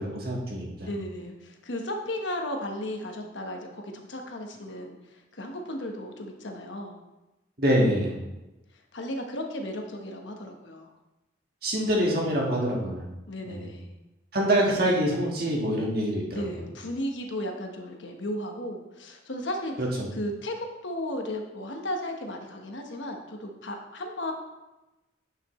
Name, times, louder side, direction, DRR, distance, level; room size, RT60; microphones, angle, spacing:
voice 1, 0.0-0.9 7.6-8.2 11.6-13.0 13.5-13.7 14.3-16.4 19.8-20.1, right 1 dB, 50° right, -2 dB, 1.6 m, -25 dB
voice 2, 0.8-7.0 8.9-10.9 13.3-13.9 14.6-14.7 16.3-19.7 20.1-24.3, left 1 dB, 75° left, 3 dB, 1.1 m, -35 dB
9.7 x 5.8 x 3.1 m, 1.0 s
head